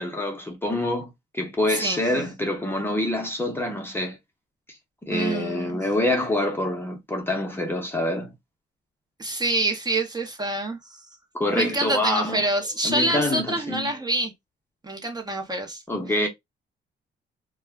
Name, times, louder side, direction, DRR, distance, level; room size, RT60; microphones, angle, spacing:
voice 1, 0.0-4.2 5.0-8.3 11.3-12.4 12.8-13.9 15.9-16.3, left 1 dB, 10° left, 0.8 m, -26 dB
voice 2, 1.7-2.0 5.1-5.8 9.2-11.0 11.5-14.3 14.8-15.8, right 2 dB, 20° right, 0.8 m, -26 dB
2.3 x 2.1 x 3.4 m
cardioid pair, 90°, 20 cm